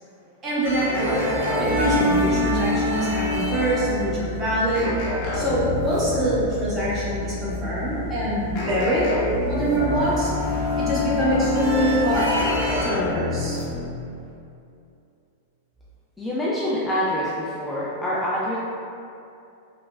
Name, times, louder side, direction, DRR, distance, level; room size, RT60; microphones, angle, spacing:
voice 1, 0.4-1.3 1.6-4.9 5.3-9.1 9.5-10.3 10.7-12.3 12.8-13.6, right 1 dB, 25° right, -8 dB, 0.8 m, -24 dB
sound 1, 0.6-12.9, left 2 dB, 80° right, 1.2 m, -27 dB
sound 2, 0.9-2.7 4.7-6.4 8.5-10.1 12.4-14.0, left 1 dB, 50° left, 0.7 m, -28 dB
voice 2, 16.2-18.6, left 1 dB, 10° left, -8 dB, 0.3 m, -26 dB
3.2 x 2.0 x 2.4 m, 2.6 s
supercardioid pair, 135°, 0 cm